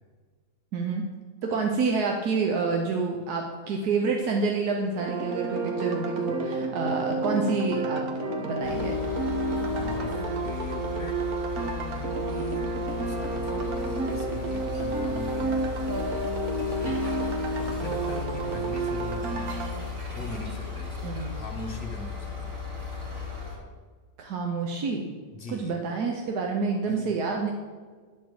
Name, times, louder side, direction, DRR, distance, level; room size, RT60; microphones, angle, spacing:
voice 1, 0.7-1.0 1.4-8.0 8.4-9.0 21.0-21.3 24.2-25.1 25.5-27.5, right 4 dB, 85° right, 1 dB, 1.5 m, -28 dB
sound 1, 5.0-19.8, right 2 dB, 70° right, 1.6 m, -30 dB
sound 2, 8.6-23.6, left 5 dB, 35° right, 3.0 m, -36 dB
voice 2, 9.6-11.2 11.6-16.0 16.5-19.5 20.1-22.6 25.3-25.8 26.8-27.1, left 2 dB, 40° left, 4 dB, 1.1 m, -41 dB
10.5 x 4.4 x 7.7 m, 1.5 s
omnidirectional pair, 1.6 m